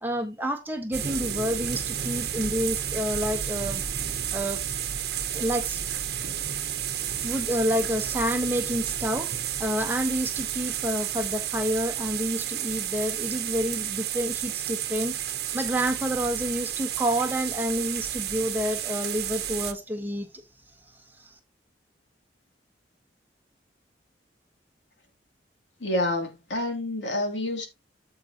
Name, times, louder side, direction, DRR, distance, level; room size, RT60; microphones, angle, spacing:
voice 1, 0.0-3.8 4.3-4.6 5.3-5.8 7.2-9.3 9.6-20.3 21.2-21.3, equal, 10° right, 1.4 m, -29 dB
sound 1, 0.9-19.7, right 10 dB, 60° right, 1.0 m, -31 dB
voice 2, 25.8-27.7, left 1 dB, 90° left, 3.0 m, -28 dB
9.3 x 7.8 x 2.9 m
head